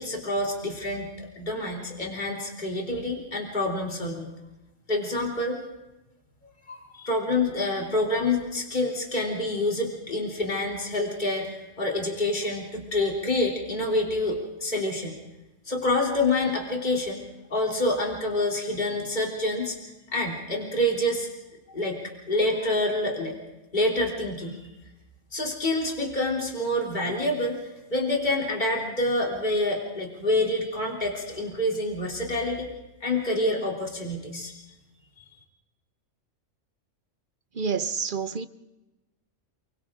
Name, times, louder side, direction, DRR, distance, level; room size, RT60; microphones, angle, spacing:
voice 1, 0.0-4.3 4.9-5.6 6.7-15.1 15.7-17.2 17.5-19.8 20.1-21.3 21.7-22.0 22.3-23.4 23.7-24.6 25.3-27.6 27.9-32.7 33.0-34.5, left 1 dB, 35° left, 3.7 m, -27 dB
voice 2, 37.5-38.5, right 5 dB, 45° right, 1.1 m, -28 dB
29.5 x 23.5 x 3.8 m
omnidirectional pair, 1.3 m